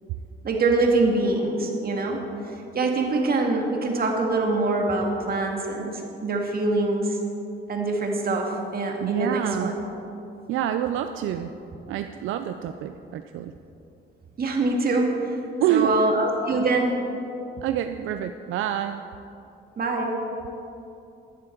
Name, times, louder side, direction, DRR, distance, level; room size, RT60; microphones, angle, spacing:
voice 1, 0.4-7.2 7.7-9.9 14.4-15.4 15.7-17.0 19.8-20.2, right 2 dB, 50° right, 1 dB, 2.0 m, -24 dB
voice 2, 9.0-9.7 10.5-11.5 11.9-13.5 15.6-16.1 17.6-19.1, right 11 dB, 85° right, 9 dB, 0.5 m, -27 dB
11.5 x 11.0 x 4.5 m, 2.7 s
cardioid pair, 90°, 20 cm